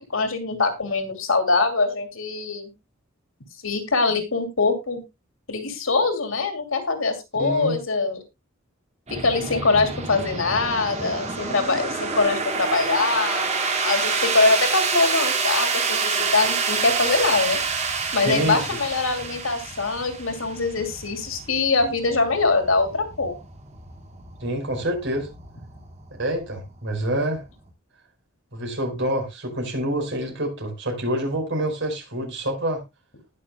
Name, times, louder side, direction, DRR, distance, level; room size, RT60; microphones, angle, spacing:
voice 1, 0.1-2.7 3.6-5.0 5.5-8.2 9.1-13.5 13.8-17.6 18.1-23.3, left 3 dB, 75° left, 2.9 m, -23 dB
voice 2, 7.3-7.8 18.2-18.6 24.4-25.3 26.2-27.4 28.5-32.8, right 1 dB, 60° right, 4.9 m, -27 dB
sound 1, 9.1-27.7, right 4 dB, 35° right, 2.3 m, -28 dB
20.0 x 6.8 x 2.3 m
head